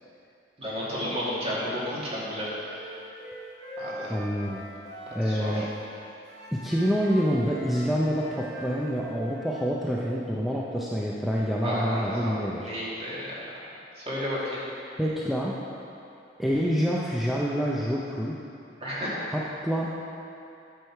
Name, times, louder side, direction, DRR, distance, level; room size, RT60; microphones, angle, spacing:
voice 1, 0.6-2.5 3.8-4.1 5.3-5.6 11.6-12.3 12.6-13.3 14.0-14.6 18.8-19.1, equal, 35° right, -7 dB, 2.2 m, -32 dB
Wind instrument woodwind instrument, 2.7-5.9 6.3-9.7, equal, 75° right, 1.9 m, -42 dB
voice 2, 4.1-4.6 5.1-5.7 6.5-12.7 15.0-15.5 16.4-18.3 19.3-19.9, equal, ahead, -5 dB, 0.6 m, -27 dB
9.7 x 6.3 x 4.6 m, 2.7 s
head